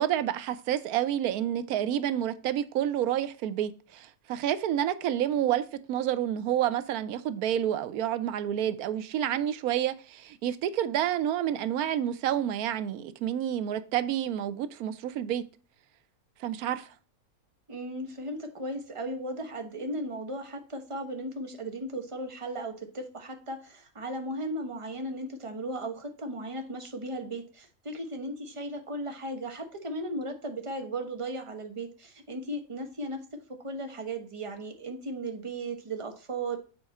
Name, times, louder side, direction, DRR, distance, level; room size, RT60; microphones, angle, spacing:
voice 1, 0.0-15.4 16.4-16.9, right 11 dB, 90° right, 1.1 m, -29 dB
voice 2, 17.7-33.2 33.6-36.6, right 1 dB, 25° right, 1.1 m, -36 dB
7.4 x 4.5 x 4.2 m
omnidirectional pair, 1.5 m